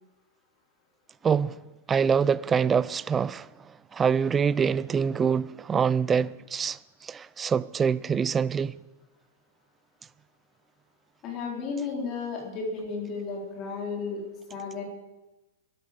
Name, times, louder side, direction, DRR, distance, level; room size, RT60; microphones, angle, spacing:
voice 1, 1.2-1.6 1.9-3.5 3.9-6.8 7.0-8.8, right 6 dB, 15° right, 0.4 m, -25 dB
voice 2, 11.2-14.2 14.5-14.8, left 4 dB, 25° left, 4.0 m, -33 dB
12.5 x 11.5 x 7.8 m
supercardioid pair, 165°, 0 cm